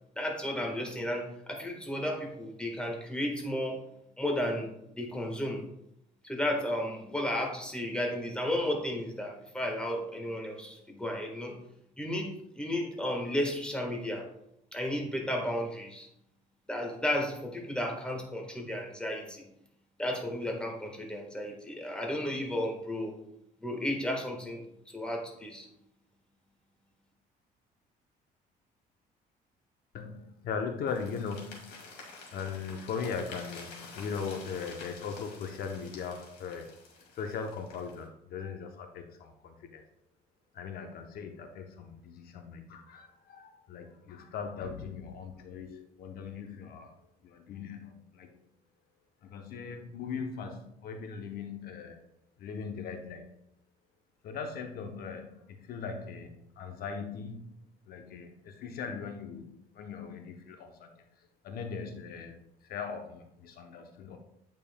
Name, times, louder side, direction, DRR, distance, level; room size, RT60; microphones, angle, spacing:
voice 1, 0.2-3.8 4.2-5.6 6.2-11.5 12.0-14.3 14.7-16.1 16.7-19.4 20.0-23.1 23.6-24.6 24.9-25.7, left 1 dB, 5° left, 1 dB, 1.4 m, -33 dB
voice 2, 29.9-31.9 32.3-36.7 37.1-39.8 40.5-47.0 47.2-48.4 49.2-52.0 52.4-53.3 54.2-60.9 61.4-64.2, left 5 dB, 65° left, 5 dB, 0.7 m, -39 dB
sound 1, 30.9-38.1, left 3 dB, 85° left, 1.7 m, -49 dB
8.6 x 5.3 x 2.2 m, 0.78 s
cardioid pair, 110°, 17 cm